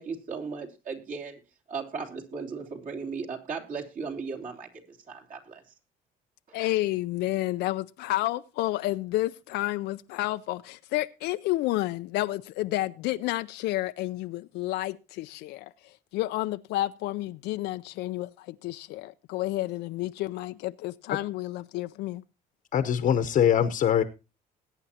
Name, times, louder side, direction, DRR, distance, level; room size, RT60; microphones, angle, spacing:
voice 1, 0.0-1.4 1.7-5.6 6.5-6.6, right 5 dB, 50° right, 3.3 m, -37 dB
voice 2, 6.5-22.2, left 17 dB, 85° left, 0.5 m, -30 dB
voice 3, 22.7-24.0, left 9 dB, 55° left, 0.9 m, -22 dB
20.5 x 9.0 x 2.8 m
cardioid pair, 110°, 17 cm